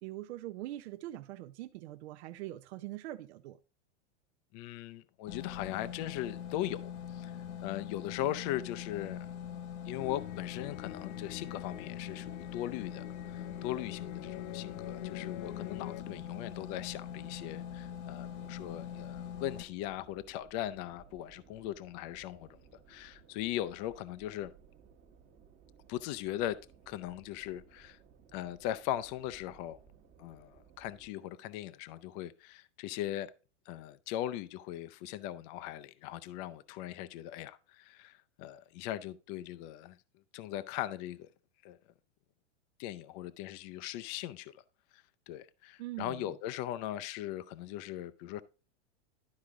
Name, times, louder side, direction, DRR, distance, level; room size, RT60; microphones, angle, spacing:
voice 1, 0.0-3.6 45.8-46.3, right 15 dB, 65° right, 0.6 m, -43 dB
voice 2, 4.5-7.3 7.6-9.3 9.8-22.6 22.9-24.5 25.9-28.0 28.3-29.8 30.2-33.3 33.7-40.0 40.3-41.3 41.6-41.8 42.8-44.5 44.9-48.4, left 13 dB, 35° left, 0.5 m, -39 dB
sound 1, 5.3-19.6, left 9 dB, 75° left, 1.4 m, -43 dB
sound 2, 10.0-16.0, left 17 dB, 90° left, 0.5 m, -47 dB
sound 3, 12.1-31.1, right 7 dB, 25° right, 1.2 m, -61 dB
11.5 x 4.8 x 3.6 m
supercardioid pair, 150°, 36 cm